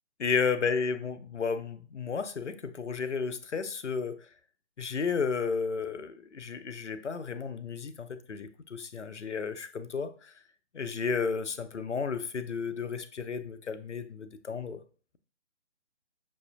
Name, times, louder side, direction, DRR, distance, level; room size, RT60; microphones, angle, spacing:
voice 1, 0.2-4.2 4.8-10.3 10.7-14.8, left 5 dB, 90° left, 11 dB, 0.6 m, -33 dB
5.9 x 2.6 x 2.3 m, 0.40 s
figure-of-eight pair, 140°, 34 cm